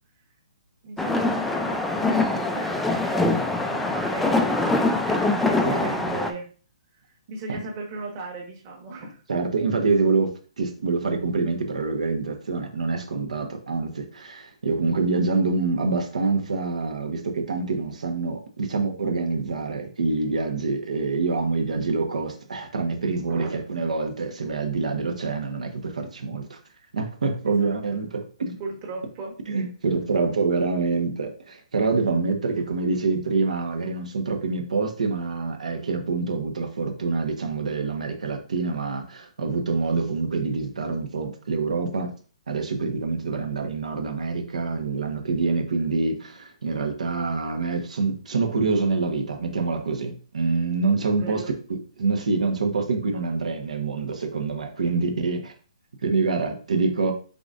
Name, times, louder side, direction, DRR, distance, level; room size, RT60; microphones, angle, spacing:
voice 1, 0.8-6.5 7.0-9.2 23.3-23.5 27.4-27.7 28.6-29.3 51.2-51.5 54.8-55.0, right 3 dB, 25° right, 0 dB, 1.2 m, -37 dB
sound 1, 1.0-6.3, left 2 dB, 5° left, 0.3 m, -23 dB
voice 2, 9.3-26.6 26.9-28.6 29.5-42.1 42.5-55.5 56.0-57.1, right 4 dB, 85° right, 3 dB, 1.1 m, -26 dB
4.9 x 3.9 x 2.5 m, 0.39 s
hypercardioid pair, 160°, 4 cm